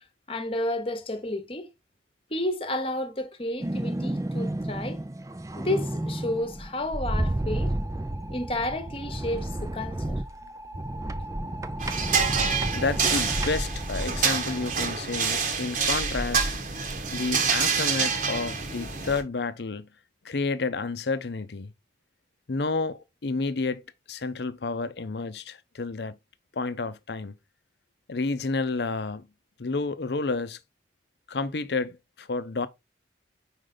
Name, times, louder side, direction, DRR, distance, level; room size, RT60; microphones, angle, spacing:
voice 1, 0.3-1.7 2.3-5.0 5.6-7.7 8.3-10.2 13.1-13.2, left 1 dB, 30° left, 1.0 m, -31 dB
sound 1, 3.6-14.9, right 1 dB, 15° right, 0.4 m, -32 dB
sound 2, 11.8-19.2, right 5 dB, 45° right, 1.2 m, -27 dB
voice 2, 12.7-16.5 17.1-19.9 20.2-21.7 22.5-23.8 24.1-26.2 26.6-27.3 28.1-29.3 29.6-30.6 31.3-32.7, left 3 dB, 65° left, 0.6 m, -30 dB
5.2 x 5.0 x 3.8 m
head